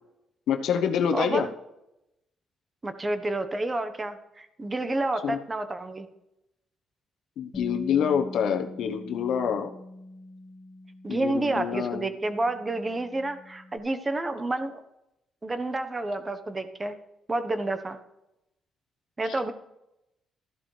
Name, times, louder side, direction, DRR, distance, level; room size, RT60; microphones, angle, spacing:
voice 1, 0.5-1.5 5.2-5.4 7.4-9.7 11.1-12.1, left 7 dB, 80° left, 6 dB, 1.0 m, -26 dB
voice 2, 1.1-1.4 2.8-6.1 11.0-14.8 15.4-17.0 17.3-18.0 19.2-19.5, right 2 dB, 25° right, 10 dB, 1.1 m, -29 dB
Bass guitar, 7.5-13.8, left 1 dB, 35° left, 2.5 m, -44 dB
13.5 x 11.5 x 3.3 m, 0.86 s
cardioid pair, 90°, 0 cm